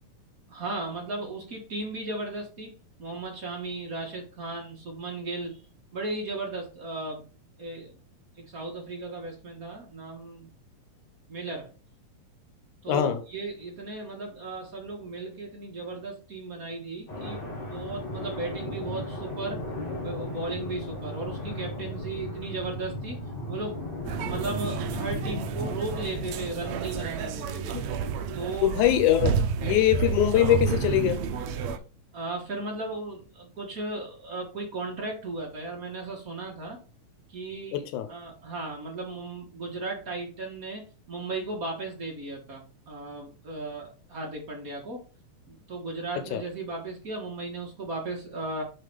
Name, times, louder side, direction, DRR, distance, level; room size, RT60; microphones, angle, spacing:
voice 1, 0.5-5.6 5.9-7.2 7.6-8.0 8.4-10.5 11.3-11.7 12.8-19.6 20.0-23.2 23.5-23.8 24.2-27.7 28.3-28.7 32.1-36.8 37.3-45.0 45.5-48.6, right 2 dB, 55° right, 0 dB, 1.0 m, -36 dB
voice 2, 12.9-13.2 27.7-27.8 28.6-31.2 37.7-38.1 46.3-46.4, left 12 dB, 75° left, 9 dB, 2.2 m, -23 dB
sound 1, 17.1-27.1, left 1 dB, 45° left, 0.7 m, -36 dB
sound 2, 24.0-31.8, right 6 dB, 85° right, 1.5 m, -30 dB
6.6 x 3.7 x 5.1 m, 0.35 s
omnidirectional pair, 3.8 m